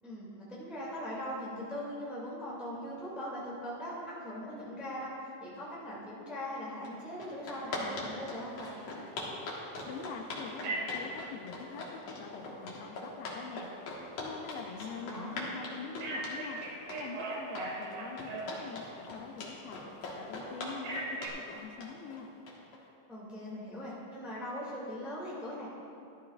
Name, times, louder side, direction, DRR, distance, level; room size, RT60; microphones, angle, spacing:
voice 1, 0.0-9.0 15.0-15.5 23.1-25.7, equal, ahead, -8 dB, 1.0 m, -40 dB
sound 1, 6.8-6.9 7.2-22.8, left 2 dB, 55° left, 2.3 m, -41 dB
voice 2, 9.9-19.8 20.2-22.3, left 5 dB, 85° left, 4 dB, 2.6 m, -44 dB
Telephone, 10.6-11.1 16.0-18.9 20.8-21.3, right 2 dB, 85° right, 3.2 m, -38 dB
14.0 x 13.0 x 2.4 m, 2.6 s
omnidirectional pair, 4.3 m